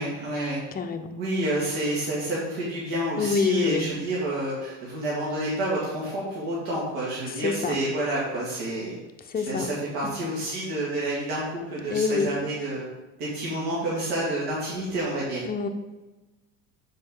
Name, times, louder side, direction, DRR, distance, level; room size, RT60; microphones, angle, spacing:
voice 1, 0.0-0.6 1.2-9.0 9.4-12.9 13.2-15.4, right 1 dB, 70° right, -6 dB, 2.4 m, -29 dB
voice 2, 0.7-1.2 3.2-3.9 7.3-7.8 9.3-9.7 10.0-10.1 11.8-12.4 15.4-15.7, left 5 dB, 25° left, 6 dB, 0.7 m, -26 dB
7.6 x 5.3 x 3.9 m, 1.1 s
supercardioid pair, 100°, 37 cm